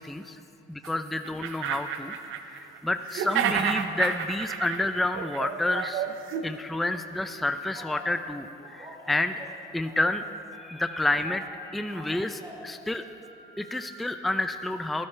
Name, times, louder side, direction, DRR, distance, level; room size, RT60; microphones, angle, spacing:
voice 1, 0.0-0.4 0.7-2.1 2.4-6.1 6.4-9.4 9.7-10.2 10.6-11.4 11.7-13.0 13.6-15.1, left 2 dB, ahead, 8 dB, 0.4 m, -29 dB
sound 1, 0.8-0.9 1.2-2.8 3.1-6.4, right 8 dB, 85° right, 0.7 m, -30 dB
Telephone, 7.7-8.1 8.6-10.2 10.5-12.7 13.2-13.9, right 1 dB, 25° right, 2.8 m, -47 dB
15.5 x 13.0 x 3.3 m, 2.8 s
cardioid pair, 90°, 20 cm